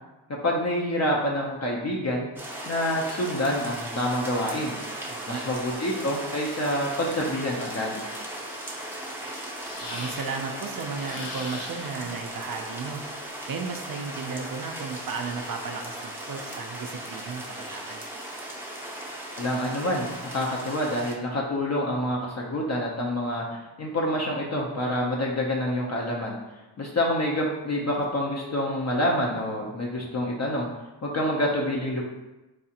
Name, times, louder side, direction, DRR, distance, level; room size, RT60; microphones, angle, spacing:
voice 1, 0.4-2.3 2.7-4.7 5.3-8.0 19.4-26.4 26.8-30.7 31.0-32.0, left 1 dB, 40° left, -3 dB, 0.6 m, -27 dB
sound 1, 2.4-21.2, right 1 dB, 5° right, 0.6 m, -37 dB
voice 2, 5.1-5.4 9.8-13.0 13.5-18.0, right 5 dB, 55° right, 3 dB, 0.5 m, -34 dB
sound 2, 9.6-10.5 10.9-12.1 13.8-15.7, left 2 dB, 80° left, 0.8 m, -42 dB
4.7 x 2.4 x 2.8 m, 1.1 s
cardioid pair, 85°, 43 cm